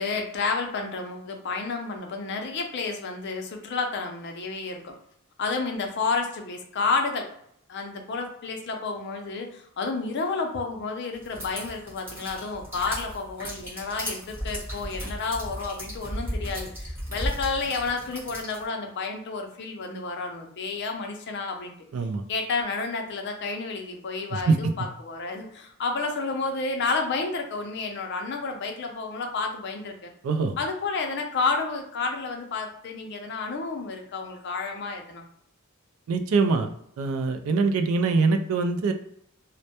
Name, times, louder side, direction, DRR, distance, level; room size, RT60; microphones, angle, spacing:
voice 1, 0.0-5.0 5.4-7.3 7.7-21.7 22.3-30.1 30.6-35.2, left 4 dB, 50° left, 3 dB, 0.4 m, -30 dB
sound 1, 11.2-18.6, equal, 10° right, 1.0 m, -35 dB
voice 2, 21.9-22.2 24.3-24.7 30.2-30.5 36.1-36.7 37.0-38.9, right 4 dB, 70° right, 7 dB, 0.3 m, -23 dB
2.1 x 2.1 x 2.8 m, 0.71 s
head